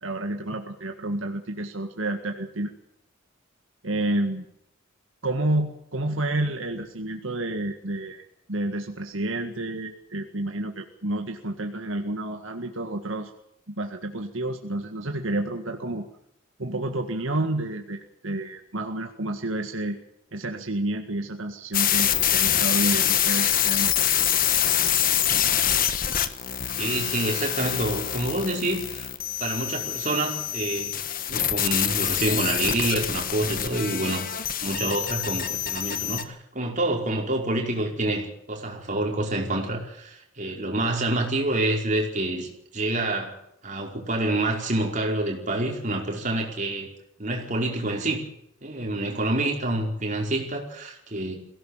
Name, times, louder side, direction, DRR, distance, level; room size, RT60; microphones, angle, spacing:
voice 1, 0.0-2.7 3.8-4.5 5.2-8.2 8.5-13.3 13.7-16.1 16.6-20.0 20.3-23.9, right 1 dB, 75° right, 4 dB, 1.9 m, -29 dB
sound 1, 21.7-36.2, left 10 dB, 45° left, 1.4 m, -25 dB
voice 2, 26.8-29.1 29.4-30.9 31.3-34.3 34.6-43.3 43.6-46.9 47.2-48.2 48.6-51.3, right 2 dB, 40° right, 0 dB, 5.1 m, -27 dB
22.5 x 17.0 x 7.4 m, 0.76 s
head